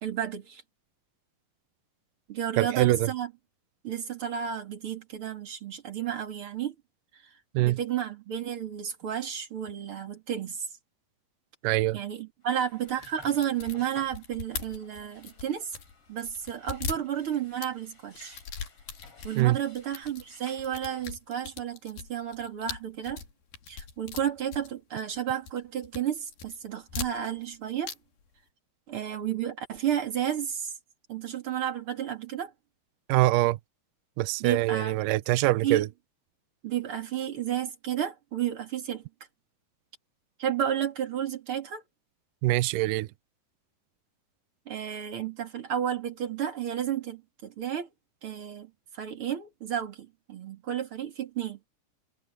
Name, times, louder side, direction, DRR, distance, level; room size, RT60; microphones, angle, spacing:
voice 1, 0.0-0.6 2.3-3.3 3.8-6.7 7.6-10.7 11.9-15.8 16.1-18.4 19.2-23.2 23.7-27.9 28.9-30.7 31.1-32.5 34.4-35.0 35.6-35.9 36.6-39.0 40.4-41.8 44.7-47.9 48.2-51.6, right 9 dB, 40° right, 2.9 m, -32 dB
voice 2, 2.6-3.1 7.5-7.8 11.6-12.0 19.4-19.6 33.1-33.6 34.2-35.9 42.4-43.1, right 17 dB, 90° right, 1.9 m, -24 dB
sound 1, 12.4-21.1, left 3 dB, 35° left, 6.1 m, -56 dB
sound 2, 12.9-15.9 16.2-17.7 18.1-19.4 19.7-20.2 20.6-25.2 25.4-26.0 26.3-27.5 27.8-28.0 28.2-28.3, left 6 dB, 65° left, 4.8 m, -39 dB
omnidirectional pair, 4.6 m